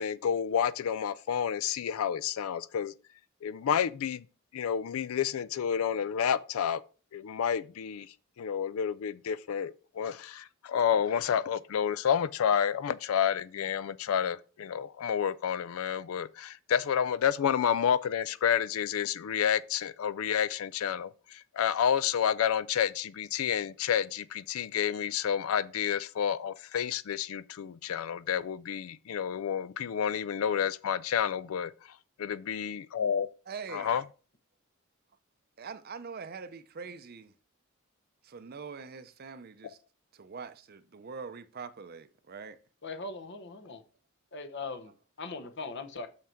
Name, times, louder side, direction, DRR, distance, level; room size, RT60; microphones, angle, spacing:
voice 1, 0.0-2.9 3.4-4.2 4.5-6.8 7.1-8.1 8.4-31.7 32.2-33.3 33.7-34.0, left 8 dB, 85° left, 0.4 m, -30 dB
voice 2, 33.5-34.0 35.6-37.3 38.2-39.8 40.1-42.6, right 5 dB, 45° right, 0.6 m, -43 dB
voice 3, 42.8-43.8 44.3-44.9 45.2-46.1, left 3 dB, 55° left, 0.9 m, -39 dB
6.2 x 5.7 x 4.4 m
head